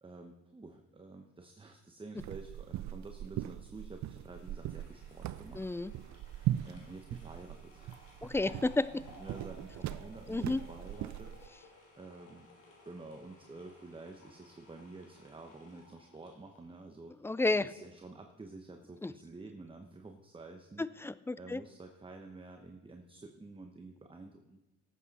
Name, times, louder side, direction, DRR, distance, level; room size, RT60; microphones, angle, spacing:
voice 1, 0.0-5.7 6.7-8.6 8.9-11.3 12.0-12.5 12.8-17.1 17.6-20.9 21.4-24.6, right 3 dB, 15° right, 4 dB, 1.0 m, -50 dB
sound 1, 2.2-11.5, right 12 dB, 65° right, 0.5 m, -40 dB
sound 2, 4.2-17.4 17.8-17.9, left 1 dB, 80° left, 3.5 m, -58 dB
voice 2, 5.5-5.9 8.3-9.0 10.3-10.6 17.2-17.7 19.0-19.1 20.8-21.6, left 2 dB, 10° left, 17 dB, 0.3 m, -31 dB
18.0 x 8.2 x 4.2 m, 1.0 s
cardioid pair, 90°, 30 cm